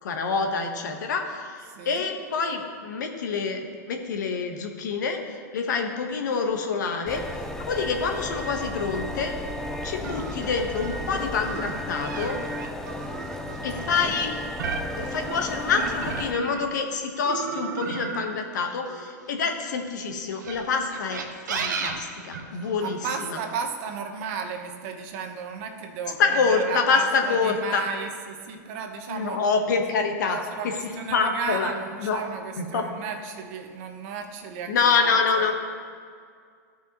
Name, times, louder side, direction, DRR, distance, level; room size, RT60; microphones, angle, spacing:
voice 1, 0.0-3.6 3.8-7.2 7.6-9.3 9.8-12.4 13.6-14.3 15.0-21.2 21.5-23.0 23.3-23.4 26.2-27.8 29.1-30.4 30.6-30.7 31.1-31.7 32.0-32.2 32.6-32.9 34.7-35.5, left 5 dB, 75° left, 4 dB, 1.1 m, -26 dB
voice 2, 1.7-2.1 13.4-14.2 22.6-29.4 29.9-35.5, right 6 dB, 50° right, 4 dB, 1.0 m, -34 dB
sound 1, 7.1-16.3, left 1 dB, 5° left, 0.5 m, -34 dB
sound 2, 10.0-16.8 17.2-19.6 20.3-22.9, right 5 dB, 80° right, 1.0 m, -34 dB
14.0 x 5.6 x 3.0 m, 2.1 s
hypercardioid pair, 125°, 10 cm